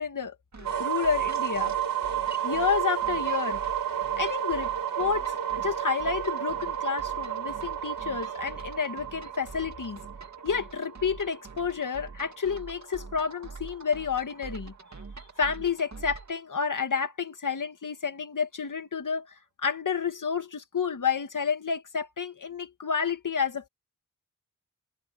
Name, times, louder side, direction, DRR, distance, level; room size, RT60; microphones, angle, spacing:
voice 1, 0.0-1.7 2.4-3.6 4.2-10.0 10.4-14.7 15.4-19.3 19.6-23.7, left 6 dB, 65° left, 2.0 m, -30 dB
sound 1, 0.5-16.4, right 4 dB, 55° right, 2.4 m, -46 dB
sound 2, 0.6-12.4, right 10 dB, 80° right, 1.9 m, -31 dB
wide cardioid pair, 85°, 33 cm